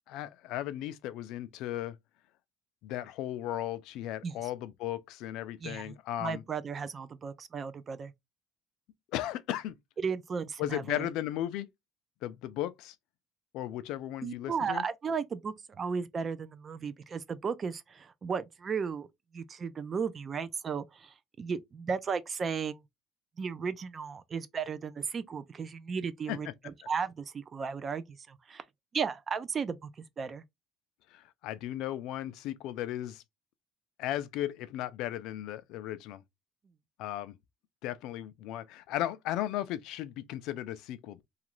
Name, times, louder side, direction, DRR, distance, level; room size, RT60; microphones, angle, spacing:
voice 1, 0.1-2.0 2.8-6.4 9.1-9.8 10.6-11.7 12.2-12.9 13.5-14.8 26.3-26.4 31.1-33.2 34.0-36.2 37.0-37.4 37.8-41.2, left 13 dB, 65° left, 0.4 m, -36 dB
voice 2, 5.6-8.1 10.0-11.1 14.2-19.1 19.3-22.8 23.4-28.6 28.9-30.4, right 6 dB, 25° right, 0.3 m, -35 dB
2.9 x 2.4 x 3.0 m
cardioid pair, 160°, 0 cm